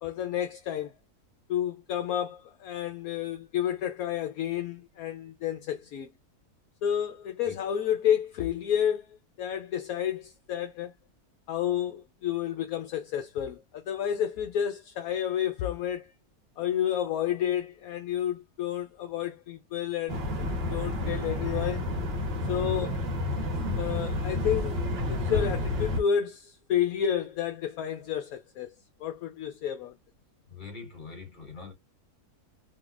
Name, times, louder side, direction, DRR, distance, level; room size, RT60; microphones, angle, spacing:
voice 1, 0.0-0.9 1.5-6.1 6.8-9.1 9.4-10.9 11.5-16.1 16.6-20.3 20.7-21.9 22.5-23.0 23.7-24.8 25.1-28.7 29.0-30.0, left 9 dB, 70° left, 1.0 m, -30 dB
sound 1, 20.1-26.0, left 2 dB, 45° right, 1.2 m, -30 dB
voice 2, 30.5-31.7, left 4 dB, 30° left, 1.7 m, -43 dB
3.8 x 2.8 x 2.4 m
omnidirectional pair, 1.6 m